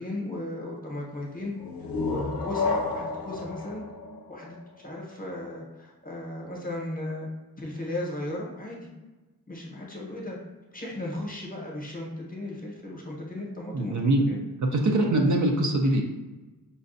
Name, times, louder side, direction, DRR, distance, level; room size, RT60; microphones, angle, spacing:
voice 1, 0.0-1.5 2.0-3.8 4.3-7.3 7.6-8.9 9.5-10.4 10.7-14.0 14.3-14.4, left 1 dB, 20° left, -3 dB, 0.9 m, -36 dB
sound 1, 1.6-5.1, left 3 dB, 65° left, 0.6 m, -31 dB
voice 2, 13.7-14.3 14.7-16.0, right 1 dB, 50° right, 1 dB, 0.5 m, -23 dB
5.2 x 2.3 x 2.6 m, 1.2 s
wide cardioid pair, 125°, 38 cm